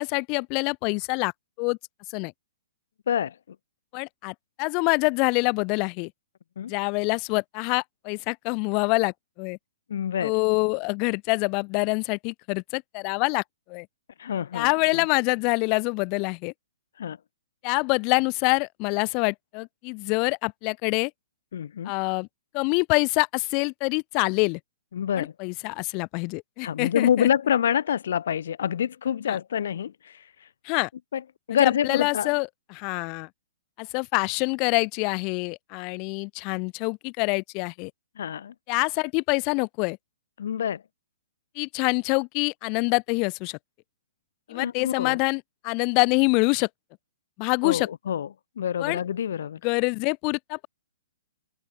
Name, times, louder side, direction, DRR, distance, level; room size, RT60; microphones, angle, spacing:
voice 1, 0.0-1.3 1.6-1.8 2.1-2.3 3.9-6.1 6.7-9.6 10.2-13.4 13.7-13.9 14.5-16.5 17.6-21.1 21.8-22.3 22.5-24.6 25.2-27.3 29.3-29.4 30.6-30.9 31.6-33.3 33.8-37.9 38.7-40.0 41.5-43.6 44.5-46.7 47.4-47.9 48.8-49.0 49.6-50.7, left 33 dB, 35° left, 1.4 m, -26 dB
voice 2, 9.9-10.3 14.2-15.0 17.0-17.2 21.5-21.9 24.9-25.3 26.6-30.5 31.1-31.2 31.5-32.3 38.2-38.5 40.4-40.8 44.5-45.2 47.6-48.3 48.6-49.6, left 9 dB, 70° left, 1.3 m, -27 dB
hypercardioid pair, 140°, 0 cm